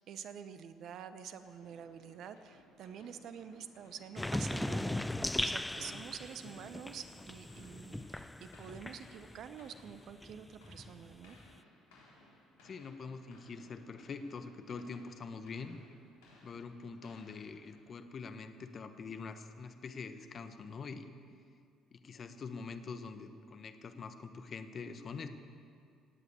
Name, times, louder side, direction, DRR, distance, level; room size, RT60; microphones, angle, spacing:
voice 1, 0.0-11.4, right 8 dB, 60° right, 11 dB, 0.9 m, -48 dB
sound 1, 1.4-18.2, left 2 dB, 80° left, 3.8 m, -63 dB
sound 2, 4.2-9.5 9.8-11.5, left 1 dB, 10° left, 0.4 m, -39 dB
voice 2, 12.6-15.8 16.4-21.1 21.9-25.3, left 4 dB, 45° left, 8 dB, 1.2 m, -45 dB
18.0 x 8.4 x 8.0 m, 2.3 s
hypercardioid pair, 60°, 0 cm